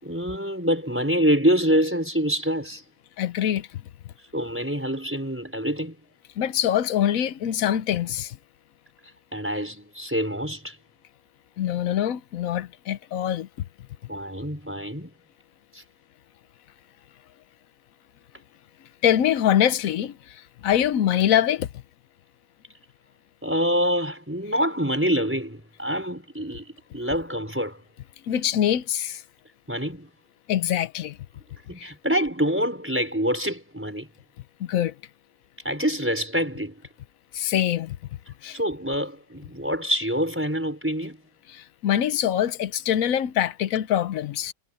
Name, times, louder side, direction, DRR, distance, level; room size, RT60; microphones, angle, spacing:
voice 1, 0.0-2.8 4.3-6.0 9.3-10.8 14.1-15.1 15.7-15.8 23.4-27.8 29.7-30.1 31.7-34.1 35.6-36.8 38.5-41.2, equal, 5° right, 4.8 m, -26 dB
voice 2, 3.2-3.7 6.4-8.4 11.6-13.5 19.0-20.4 20.6-21.7 28.3-29.2 30.5-31.2 31.8-31.9 34.6-34.9 37.3-38.0 38.4-38.6 41.5-44.5, left 10 dB, 60° left, 1.0 m, -24 dB
omnidirectional pair, 1.9 m